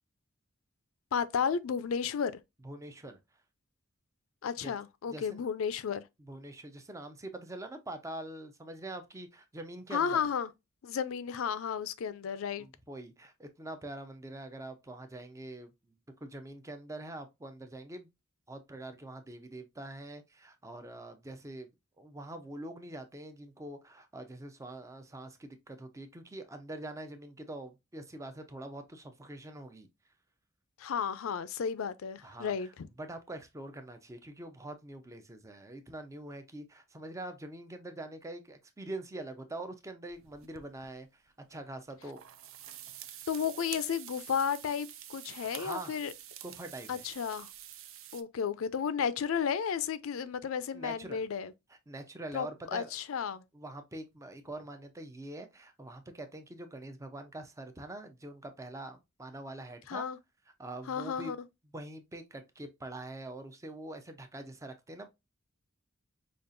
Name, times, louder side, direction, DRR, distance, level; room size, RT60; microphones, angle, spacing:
voice 1, 1.1-2.3 4.4-6.0 9.9-10.5 10.8-12.7 30.8-32.9 43.3-46.1 46.9-47.5 48.1-51.5 52.3-53.4 59.9-60.2 60.9-61.4, left 7 dB, 80° left, 0.4 m, -33 dB
voice 2, 2.6-3.2 4.6-4.7 5.1-5.4 6.2-10.3 12.6-15.9 16.2-18.1 18.5-21.7 22.0-29.9 32.2-32.7 33.0-42.2 45.4-46.0 46.4-47.0 50.7-51.2 51.9-52.9 53.5-60.1 60.6-61.3 61.7-65.1, right 1 dB, 15° right, 0.5 m, -44 dB
sound 1, 40.1-40.9 41.9-48.2, right 11 dB, 70° right, 0.4 m, -48 dB
5.2 x 2.4 x 2.5 m
head